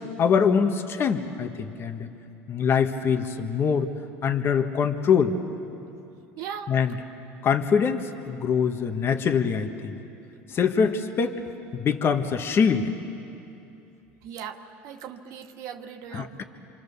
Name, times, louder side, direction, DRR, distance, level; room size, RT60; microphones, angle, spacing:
voice 1, 0.2-2.1 2.5-3.9 4.2-5.3 6.7-6.9 7.4-10.0 10.5-11.4 11.7-12.9 16.1-16.4, left 6 dB, 40° left, 6 dB, 1.5 m, -23 dB
voice 2, 6.3-6.8 14.2-16.4, right 8 dB, 65° right, 4 dB, 1.7 m, -39 dB
28.0 x 24.5 x 7.0 m, 2.8 s
supercardioid pair, 95°, 6 cm